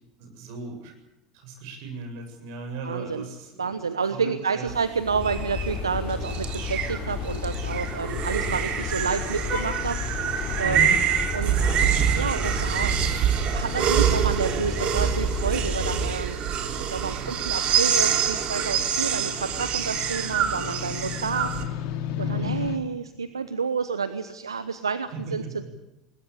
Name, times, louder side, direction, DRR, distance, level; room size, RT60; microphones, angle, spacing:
voice 1, 0.2-0.9 1.3-3.8 4.1-4.7 10.6-11.0 16.4-16.8 17.1-17.3 22.2-22.6 25.4-25.7, right 2 dB, 65° right, 5 dB, 7.7 m, -37 dB
voice 2, 2.8-3.2 3.6-10.9 11.3-11.6 12.1-12.9 13.5-16.4 16.9-21.5 21.9-25.7, right 5 dB, 90° right, 12 dB, 1.0 m, -29 dB
sound 1, 4.7-21.6, right 9 dB, 50° right, 3.2 m, -26 dB
sound 2, 5.0-16.2, left 6 dB, 45° left, 4.2 m, -32 dB
sound 3, 5.7-22.8, left 9 dB, 60° left, 2.5 m, -39 dB
21.0 x 21.0 x 8.7 m, 0.93 s
hypercardioid pair, 75°, 2 cm